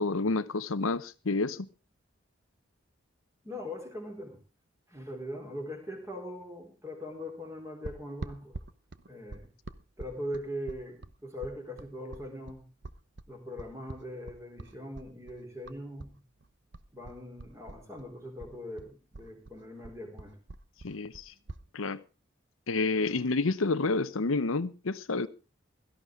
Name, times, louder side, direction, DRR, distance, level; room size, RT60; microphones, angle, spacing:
voice 1, 0.0-1.7 20.8-21.3 21.7-22.0 22.7-25.3, left 3 dB, 85° left, 0.8 m, -29 dB
voice 2, 3.4-4.4 4.9-8.6 9.1-9.5 10.0-12.6 13.3-16.2 16.9-20.4 22.9-23.1, equal, 15° right, 3.9 m, -41 dB
sound 1, 7.8-16.1 16.4-18.1 18.4-21.6, right 2 dB, 60° right, 0.9 m, -45 dB
17.0 x 13.5 x 3.6 m
head